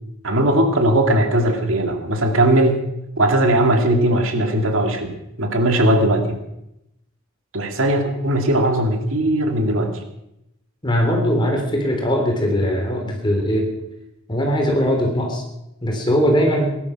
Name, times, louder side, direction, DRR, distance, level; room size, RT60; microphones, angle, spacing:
voice 1, 0.2-2.8 3.2-6.4 7.5-10.0, right 1 dB, 70° right, 4 dB, 2.2 m, -19 dB
voice 2, 10.8-13.7 14.3-15.4 15.8-16.7, equal, 20° left, 1 dB, 3.4 m, -20 dB
18.0 x 11.5 x 5.9 m, 0.85 s
head